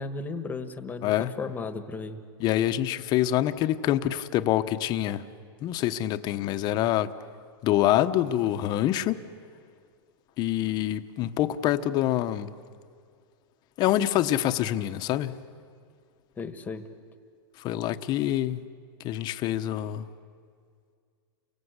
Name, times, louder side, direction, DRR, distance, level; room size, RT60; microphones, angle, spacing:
voice 1, 0.0-2.2 16.4-16.9, left 4 dB, 15° left, 1.5 m, -35 dB
voice 2, 2.4-5.2 5.6-7.1 7.6-9.3 10.4-12.5 13.8-15.4 17.6-18.6 19.0-20.1, left 13 dB, 30° left, 1.0 m, -26 dB
30.0 x 24.0 x 8.2 m
hypercardioid pair, 140°, 13 cm